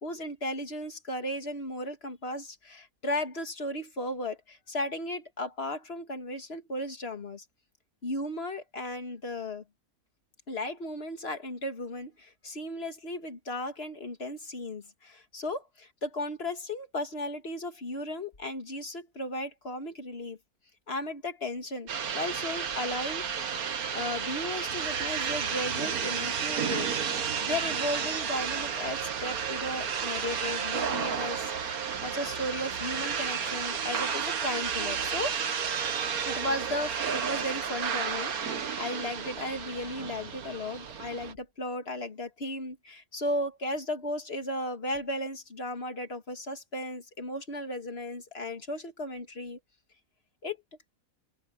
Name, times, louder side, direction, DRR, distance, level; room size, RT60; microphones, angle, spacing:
voice 1, 0.0-7.4 8.0-9.6 10.5-20.4 20.9-23.3 23.9-31.5 32.0-35.4 36.2-49.6 50.4-50.6, left 1 dB, 45° left, 2.4 m, -35 dB
sound 1, 21.9-41.3, right 7 dB, 85° right, 1.8 m, -32 dB
omnidirectional pair, 1.5 m